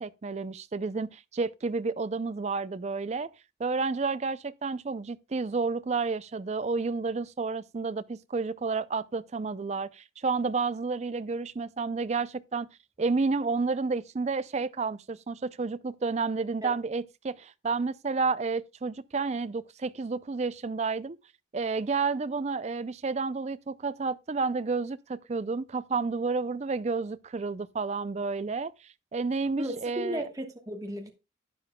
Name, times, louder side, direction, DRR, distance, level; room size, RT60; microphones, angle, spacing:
voice 1, 0.0-3.3 3.6-12.7 13.0-21.2 21.5-28.7 29.1-30.3, right 4 dB, 35° right, 0.4 m, -30 dB
voice 2, 29.6-31.1, right 1 dB, 20° right, 1.2 m, -35 dB
12.0 x 9.4 x 2.2 m
head